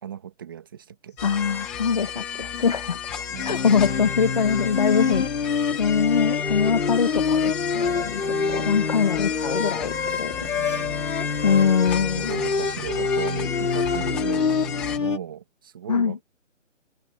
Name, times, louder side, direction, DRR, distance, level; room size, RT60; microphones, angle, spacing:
voice 1, 0.0-1.2 3.3-4.6 5.0-5.3 8.2-9.0 10.4-11.1 11.4-11.6 12.2-16.2, right 9 dB, 15° right, 1.8 m, -37 dB
voice 2, 1.2-3.0 3.3-5.2 5.8-10.3 11.4-12.4 15.9-16.2, left 6 dB, 30° left, 1.6 m, -23 dB
sound 1, 1.2-15.0, left 8 dB, 5° left, 1.2 m, -33 dB
sound 2, 3.3-15.2, left 5 dB, 75° left, 2.6 m, -26 dB
hypercardioid pair, 175°, 39 cm